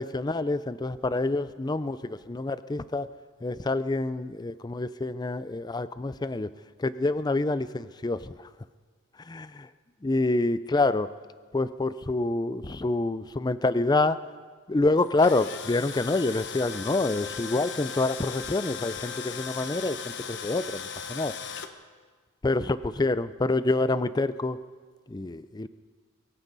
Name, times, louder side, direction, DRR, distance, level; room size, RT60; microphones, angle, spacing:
voice 1, 0.0-3.1 3.4-6.5 6.8-8.3 9.2-9.5 10.0-11.1 11.5-14.2 14.7-21.3 22.4-24.6 25.1-25.7, left 2 dB, 20° left, 14 dB, 0.4 m, -27 dB
Tools, 15.0-21.7, left 7 dB, 60° left, 0.9 m, -37 dB
23.0 x 15.5 x 4.0 m, 1.5 s
head